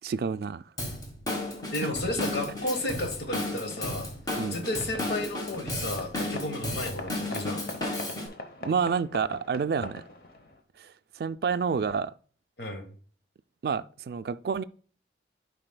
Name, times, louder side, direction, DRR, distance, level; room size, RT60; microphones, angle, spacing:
voice 1, 0.0-0.6 1.8-1.9 4.3-4.7 8.6-10.0 10.8-12.1 13.6-14.6, right 6 dB, 60° right, 0.3 m, -29 dB
Drum kit / Drum, 0.8-8.3, left 1 dB, 20° left, 1.2 m, -34 dB
sound 1, 1.5-10.6, left 2 dB, 55° left, 0.9 m, -44 dB
voice 2, 1.7-4.1 4.5-7.6 12.6-12.9, left 2 dB, 70° left, 1.2 m, -32 dB
11.0 x 4.9 x 2.2 m
head